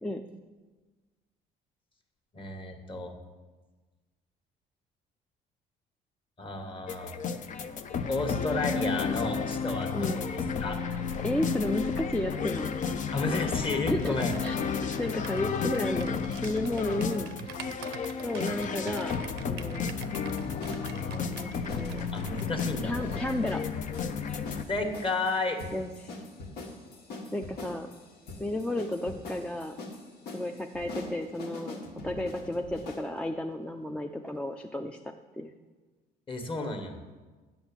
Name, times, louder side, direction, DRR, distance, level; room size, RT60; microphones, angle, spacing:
voice 1, 2.3-3.2 6.4-7.2 8.1-10.8 13.1-14.3 22.1-23.2 24.7-25.6 36.3-37.0, left 2 dB, 30° left, 4 dB, 1.6 m, -32 dB
sound 1, 6.9-24.6, left 6 dB, 50° left, 0.7 m, -32 dB
voice 2, 9.9-10.2 10.8-11.0 11.2-12.8 13.9-14.2 14.4-14.6 14.8-17.3 18.2-19.1 19.5-19.9 21.0-22.1 22.8-23.6 25.7-26.2 27.3-27.9 28.4-29.8 30.3-35.5, left 1 dB, 5° left, 4 dB, 0.5 m, -33 dB
Computer keyboard, 13.5-22.5, right 10 dB, 85° right, 0.7 m, -46 dB
sound 2, 20.4-33.1, left 2 dB, 75° left, 1.8 m, -43 dB
8.6 x 7.1 x 7.3 m, 1.3 s
cardioid pair, 110°, 17 cm